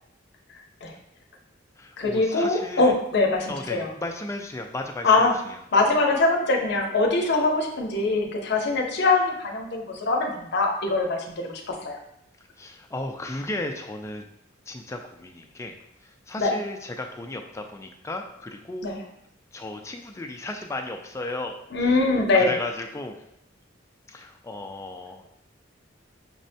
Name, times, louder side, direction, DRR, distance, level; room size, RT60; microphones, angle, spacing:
voice 1, 0.5-0.9 2.0-3.9 5.0-5.3 5.7-12.0 16.4-16.5 18.8-19.0 21.7-22.5, left 3 dB, 60° left, 2 dB, 0.6 m, -23 dB
voice 2, 1.8-2.9 3.5-5.6 12.6-14.3 14.7-15.8 16.0-18.9 19.5-22.1 22.3-23.2 24.1-25.3, left 2 dB, 15° left, 4 dB, 0.3 m, -35 dB
6.0 x 2.1 x 2.6 m, 0.77 s
head